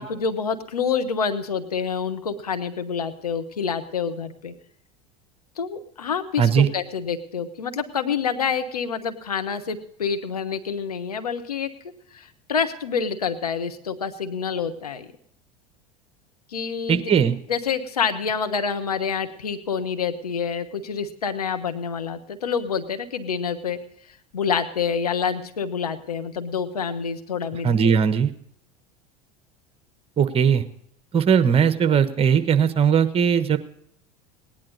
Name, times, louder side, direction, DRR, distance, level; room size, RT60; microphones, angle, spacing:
voice 1, 0.0-4.5 5.6-11.7 12.1-15.1 16.5-17.1 17.5-23.8 24.1-27.9, left 6 dB, 85° left, 7 dB, 1.1 m, -27 dB
voice 2, 6.4-6.7 16.9-17.4 27.6-28.3 30.2-30.6 31.1-33.6, right 7 dB, 30° right, 10 dB, 1.2 m, -19 dB
17.5 x 10.5 x 4.0 m, 0.70 s
hypercardioid pair, 80°, 19 cm